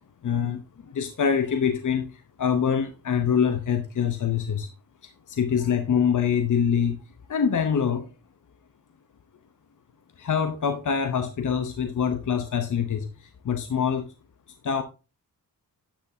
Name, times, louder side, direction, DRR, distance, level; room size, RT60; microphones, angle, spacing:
voice 1, 0.2-4.7 5.0-7.0 7.3-8.1 10.2-14.1 14.6-14.8, left 7 dB, 55° left, 0.9 m, -25 dB
10.0 x 8.3 x 2.7 m
wide cardioid pair, 135°, 37 cm